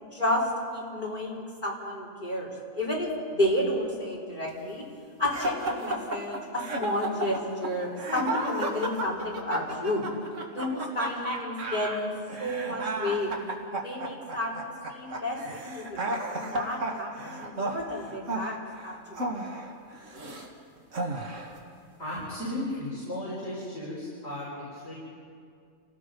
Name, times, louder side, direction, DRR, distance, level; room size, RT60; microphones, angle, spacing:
voice 1, 0.1-4.8 5.2-10.0 10.5-12.1 12.4-13.3 13.8-19.3, left 1 dB, 35° left, -4 dB, 4.3 m, -31 dB
sound 1, 5.3-20.5 20.9-21.6, right 2 dB, 65° right, 2.3 m, -33 dB
voice 2, 22.0-24.9, left 1 dB, 50° left, -8 dB, 5.8 m, -35 dB
29.5 x 18.0 x 5.4 m, 2.3 s
omnidirectional pair, 1.4 m